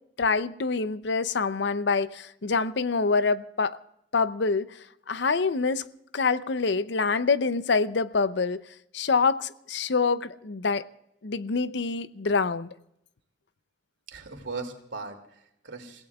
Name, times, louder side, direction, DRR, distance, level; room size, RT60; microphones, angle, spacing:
voice 1, 0.2-3.8 4.1-4.8 5.1-5.8 6.1-8.6 8.9-10.9 11.2-12.7, left 4 dB, 65° left, 0.6 m, -26 dB
voice 2, 14.1-16.1, right 4 dB, 75° right, 2.6 m, -39 dB
30.0 x 17.0 x 2.4 m
head